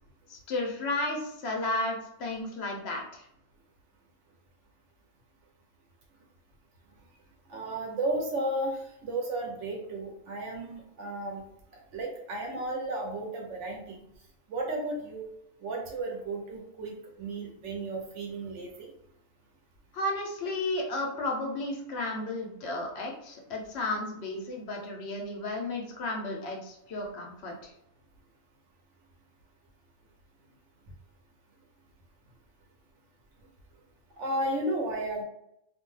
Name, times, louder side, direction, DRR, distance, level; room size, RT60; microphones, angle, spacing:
voice 1, 0.3-3.3 19.9-27.7, left 2 dB, 65° left, 0 dB, 0.9 m, -33 dB
voice 2, 7.5-11.4 11.9-14.0 14.5-15.3 15.6-18.9 34.2-35.2, right 2 dB, 80° right, 0 dB, 1.1 m, -33 dB
2.5 x 2.2 x 3.1 m, 0.80 s
omnidirectional pair, 1.2 m